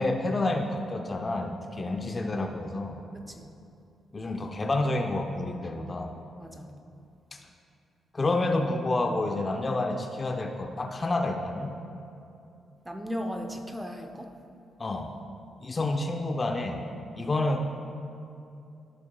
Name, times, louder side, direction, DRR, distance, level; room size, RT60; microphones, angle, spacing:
voice 1, 0.0-3.0 4.1-6.2 7.3-7.4 8.1-11.8 14.8-15.2 15.6-16.9 17.2-17.6, left 2 dB, 35° left, 4 dB, 0.6 m, -29 dB
voice 2, 1.8-2.3 3.1-3.5 6.4-6.7 12.8-14.3 17.3-17.4, equal, 10° right, 5 dB, 0.8 m, -37 dB
14.5 x 5.3 x 2.4 m, 2.6 s
supercardioid pair, 60°, 0 cm